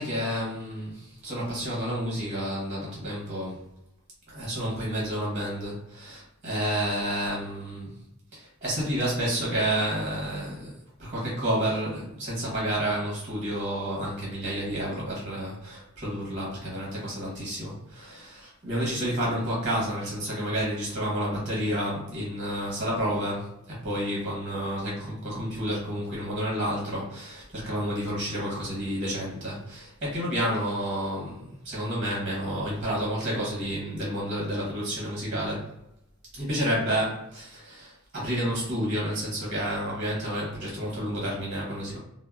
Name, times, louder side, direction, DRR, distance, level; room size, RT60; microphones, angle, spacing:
voice 1, 0.0-3.6 4.3-7.9 8.3-10.7 11.0-23.5 23.8-35.7 36.3-42.0, equal, 35° right, -5 dB, 0.9 m, -30 dB
3.4 x 2.0 x 2.3 m, 0.84 s
head